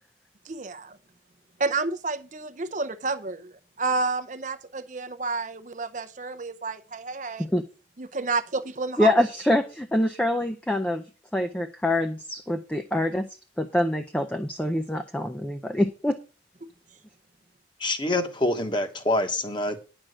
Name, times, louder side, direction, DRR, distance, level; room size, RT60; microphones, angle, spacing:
voice 1, 0.4-1.0 1.6-7.5 8.0-9.2, right 3 dB, 40° right, 0.7 m, -30 dB
voice 2, 9.0-11.0 11.3-13.3 13.6-16.2, left 1 dB, 5° left, 0.6 m, -25 dB
voice 3, 17.8-19.8, left 2 dB, 25° left, 1.3 m, -26 dB
10.5 x 6.1 x 6.4 m
head